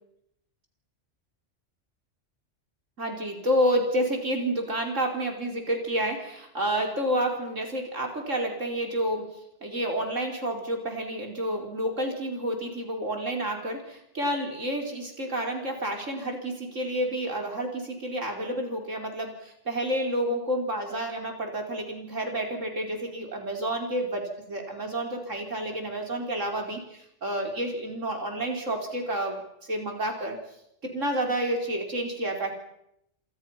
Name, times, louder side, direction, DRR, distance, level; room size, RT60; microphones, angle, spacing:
voice 1, 3.0-9.3 9.6-29.4 29.7-30.4 30.8-32.5, right 1 dB, 75° right, 2 dB, 5.2 m, -29 dB
27.5 x 27.5 x 5.9 m, 0.78 s
omnidirectional pair, 1.3 m